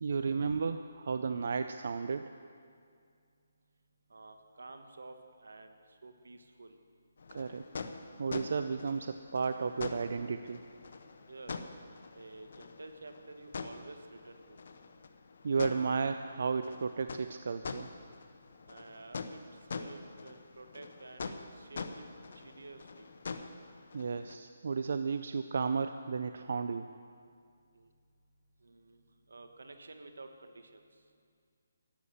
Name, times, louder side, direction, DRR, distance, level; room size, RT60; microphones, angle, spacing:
voice 1, 0.0-2.3 7.3-7.7 8.2-10.6 15.4-17.9 23.9-26.9, right 5 dB, 60° right, 9 dB, 0.5 m, -33 dB
voice 2, 4.1-6.8 11.3-11.6 12.1-14.6 18.7-19.4 19.7-22.1 22.3-23.1 27.7-27.9 28.6-29.0 29.3-30.8, right 2 dB, 85° right, 7 dB, 1.3 m, -51 dB
sound 1, 7.2-24.4, left 4 dB, 60° left, 0.8 m, -45 dB
12.5 x 8.2 x 7.9 m, 2.2 s
hypercardioid pair, 165°, 0 cm